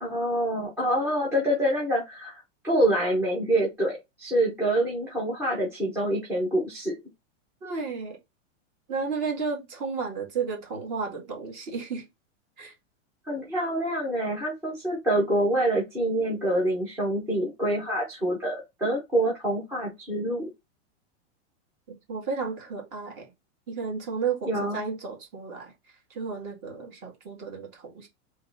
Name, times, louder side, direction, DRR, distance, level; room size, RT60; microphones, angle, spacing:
voice 1, 0.0-2.4 2.6-6.9 13.3-20.4 24.4-24.8, right 1 dB, 5° right, 0.6 m, -26 dB
voice 2, 7.6-8.2 8.9-12.0 12.6-12.7 21.9-23.3 23.7-25.7 26.1-28.1, right 5 dB, 30° right, 2.0 m, -33 dB
3.5 x 3.0 x 3.8 m
supercardioid pair, 175°, 36 cm